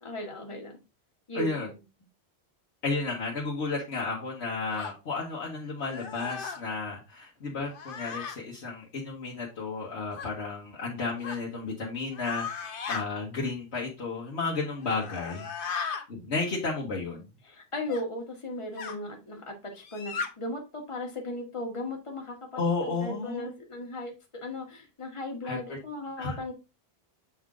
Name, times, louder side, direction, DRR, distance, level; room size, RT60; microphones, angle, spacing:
voice 1, 0.0-0.7 1.3-1.8 17.4-24.1 24.4-26.5, left 1 dB, 30° left, 1 dB, 1.4 m, -37 dB
voice 2, 1.3-1.7 2.8-15.5 16.1-17.3 22.5-23.5 25.4-25.8 26.2-26.4, left 3 dB, 80° left, -4 dB, 1.5 m, -32 dB
sound 1, 4.7-4.9 5.8-6.6 7.7-8.4 10.1-10.3 11.2-11.4 12.1-13.0 14.8-16.1 17.9-18.0 18.8-19.0 19.8-20.3, left 6 dB, 60° left, 0.9 m, -36 dB
7.0 x 3.8 x 3.6 m, 0.29 s
omnidirectional pair, 1.1 m